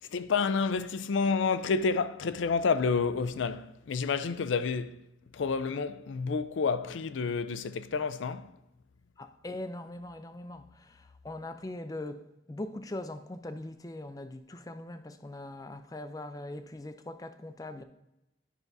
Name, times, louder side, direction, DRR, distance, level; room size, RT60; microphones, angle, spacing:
voice 1, 0.0-5.0 5.3-8.5, left 5 dB, 85° left, 0.4 m, -29 dB
voice 2, 9.2-17.8, left 1 dB, 20° left, 0.4 m, -41 dB
9.9 x 5.9 x 2.7 m
head